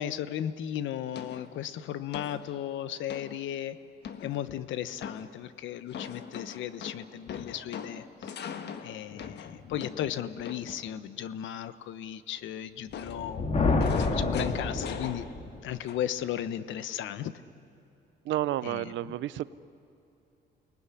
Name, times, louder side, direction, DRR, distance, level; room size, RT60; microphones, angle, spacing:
voice 1, 0.0-3.8 4.2-8.3 8.8-15.3 15.6-17.3 18.6-18.9, left 10 dB, 90° left, 13 dB, 1.1 m, -35 dB
sound 1, 1.1-1.6 2.1-2.5 3.1-3.4 4.0-4.6 5.0-5.4 5.9-10.9 12.9-15.6 15.9-16.2, left 7 dB, 65° left, 1.5 m, -41 dB
Thunder, 12.9-15.6, left 3 dB, 35° left, 2.1 m, -28 dB
voice 2, 18.3-19.4, right 14 dB, 80° right, 17 dB, 0.7 m, -30 dB
29.0 x 20.0 x 10.0 m, 2.8 s
cardioid pair, 130°, 19 cm